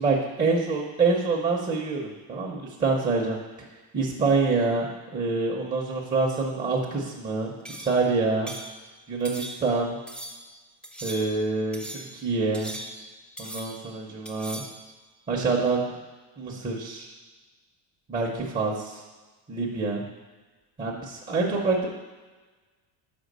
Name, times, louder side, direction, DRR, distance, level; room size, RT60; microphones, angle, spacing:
voice 1, 0.0-3.4 3.9-7.5 7.8-8.5 9.1-10.0 11.0-12.7 13.4-14.6 15.3-15.9 16.4-17.1 18.1-19.0 19.5-20.0 20.8-21.9, right 3 dB, 20° right, -4 dB, 0.7 m, -26 dB
sound 1, 7.6-8.0 8.5-8.7 9.2-9.8 10.1-10.5 10.8-11.4 11.7-12.2 12.5-13.1 13.4-13.9 14.2-14.8, equal, ahead, 0.4 m, -39 dB
5.5 x 5.2 x 6.6 m, 1.3 s
cardioid pair, 165°, 47 cm